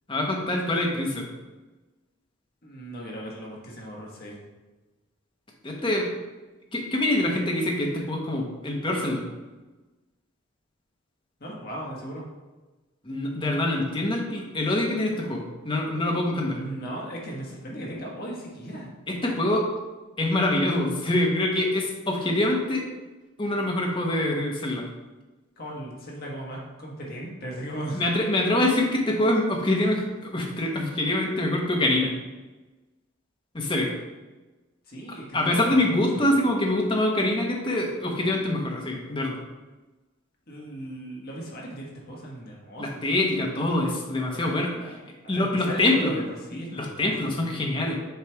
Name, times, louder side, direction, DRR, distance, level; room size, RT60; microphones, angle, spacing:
voice 1, 0.1-1.3 5.6-6.1 6.7-9.2 13.0-16.6 19.1-19.6 20.2-22.8 23.4-24.9 27.9-32.1 33.5-33.9 35.3-39.4 42.8-44.7 45.3-46.1 46.7-48.0, left 1 dB, 25° left, 0 dB, 1.0 m, -25 dB
voice 2, 2.6-4.4 11.4-12.3 16.5-18.9 25.6-28.0 34.9-36.3 40.5-43.1 44.3-44.9 45.2-47.6, equal, 50° left, -3 dB, 1.4 m, -37 dB
6.8 x 3.3 x 4.5 m, 1.2 s
head